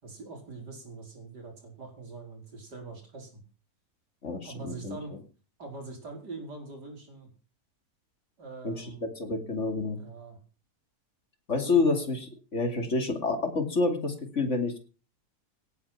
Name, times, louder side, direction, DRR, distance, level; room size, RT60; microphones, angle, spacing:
voice 1, 0.0-3.4 4.4-5.1 5.6-7.3 8.4-9.1 10.0-10.4 11.5-12.1, right 3 dB, 85° right, 3 dB, 5.3 m, -43 dB
voice 2, 4.2-5.0 8.6-10.0 11.5-14.8, left 3 dB, 45° left, 6 dB, 3.0 m, -28 dB
17.5 x 9.5 x 5.9 m, 0.36 s
omnidirectional pair, 1.7 m